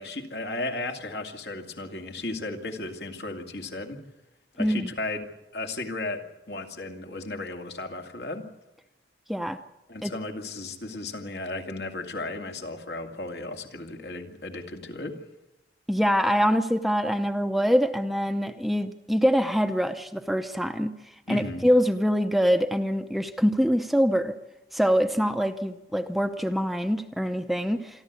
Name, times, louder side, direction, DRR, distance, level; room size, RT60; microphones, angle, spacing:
voice 1, 0.0-4.0 4.6-8.5 9.9-15.2 21.3-21.6, left 2 dB, 70° left, 3 dB, 2.4 m, -35 dB
voice 2, 4.6-4.9 9.3-9.6 10.0-10.1 15.9-20.9 21.3-24.3 24.7-28.0, equal, ahead, 7 dB, 0.7 m, -24 dB
27.0 x 12.0 x 8.3 m, 0.99 s
head